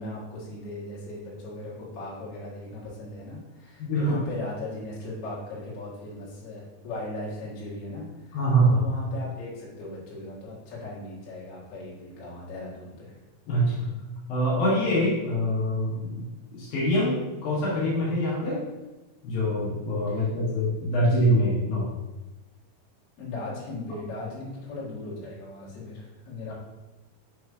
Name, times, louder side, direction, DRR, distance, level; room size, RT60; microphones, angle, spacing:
voice 1, 0.0-8.4 8.7-13.2 20.1-20.3 23.2-26.5, left 2 dB, 50° left, -7 dB, 2.3 m, -38 dB
voice 2, 3.8-4.2 8.3-8.8 13.5-14.0 14.3-16.3 16.5-18.6 19.2-21.9, equal, 70° left, -6 dB, 2.9 m, -24 dB
6.7 x 3.1 x 4.7 m, 1.1 s
omnidirectional pair, 4.6 m